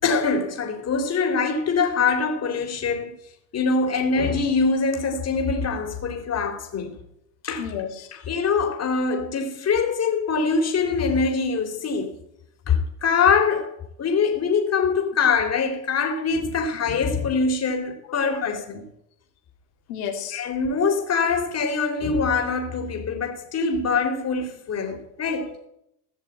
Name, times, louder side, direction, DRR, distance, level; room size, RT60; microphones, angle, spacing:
voice 1, 0.0-3.1 3.5-6.9 7.4-7.7 8.1-12.1 12.7-18.8 20.3-25.5, left 5 dB, 35° left, 3.5 m, -23 dB
voice 2, 7.6-8.3 18.3-18.4 19.9-20.4 25.2-25.7, left 8 dB, 80° left, 3.2 m, -34 dB
17.0 x 6.5 x 8.7 m
supercardioid pair, 105°, 45 cm